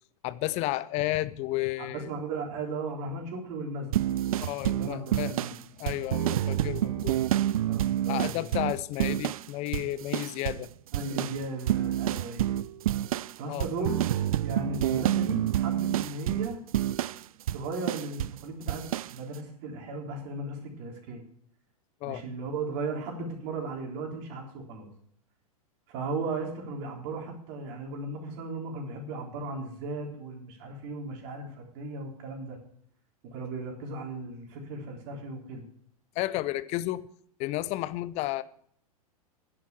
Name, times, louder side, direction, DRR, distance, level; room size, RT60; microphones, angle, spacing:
voice 1, 0.2-2.1 4.4-5.4 5.8-7.2 8.1-10.7 13.5-13.8 22.0-22.2 36.2-37.1 37.4-38.4, left 16 dB, 35° left, 17 dB, 0.6 m, -32 dB
voice 2, 1.8-4.0 4.7-5.5 7.6-8.3 10.9-12.6 13.3-14.0 14.4-16.6 17.5-18.8 19.1-21.2 22.0-24.9 25.9-32.6 33.2-35.7, right 3 dB, 45° right, 1 dB, 3.6 m, -36 dB
sound 1, 3.9-9.5 9.7-10.7 10.9-18.4 18.7-19.1, right 12 dB, 65° right, 0.4 m, -28 dB
10.5 x 7.3 x 7.4 m, 0.64 s
figure-of-eight pair, 100°, 19 cm